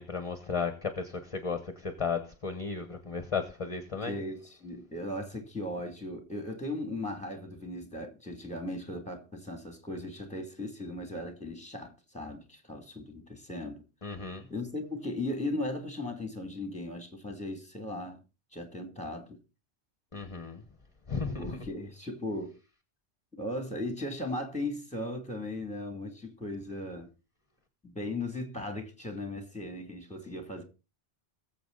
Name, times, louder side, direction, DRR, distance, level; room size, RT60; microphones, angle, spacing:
voice 1, 0.0-4.1 14.0-14.4 20.1-20.6 21.1-21.6, left 5 dB, 30° left, 1.3 m, -34 dB
voice 2, 4.1-13.8 14.5-18.2 18.5-19.4 21.4-22.5 23.4-27.1 27.8-30.6, left 1 dB, 5° left, 2.6 m, -37 dB
21.0 x 7.4 x 4.0 m
omnidirectional pair, 1.1 m